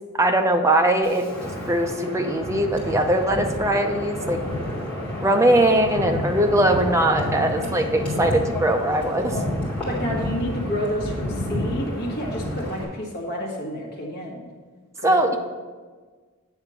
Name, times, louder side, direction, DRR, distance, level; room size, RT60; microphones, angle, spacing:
voice 1, 0.2-4.4 5.2-9.4 15.0-15.4, right 1 dB, 15° right, 4 dB, 0.6 m, -21 dB
Wind, 1.0-12.8, left 1 dB, 5° left, 2.4 m, -30 dB
voice 2, 9.9-14.4 15.0-15.2, equal, 45° left, -2 dB, 1.6 m, -29 dB
8.7 x 3.5 x 6.8 m, 1.4 s
head